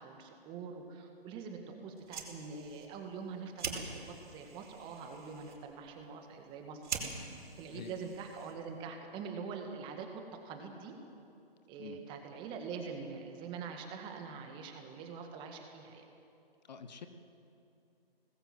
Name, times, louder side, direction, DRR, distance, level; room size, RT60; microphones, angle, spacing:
voice 1, 0.0-6.9 7.6-10.9 11.7-16.0, right 5 dB, 15° right, 4 dB, 1.8 m, -44 dB
Fire, 1.9-8.8, right 5 dB, 50° right, 4.8 m, -45 dB
voice 2, 7.7-8.2 11.8-12.0 16.6-17.1, left 6 dB, 45° left, 9 dB, 1.4 m, -47 dB
25.0 x 19.5 x 7.9 m, 2.7 s
figure-of-eight pair, 145°, 30 cm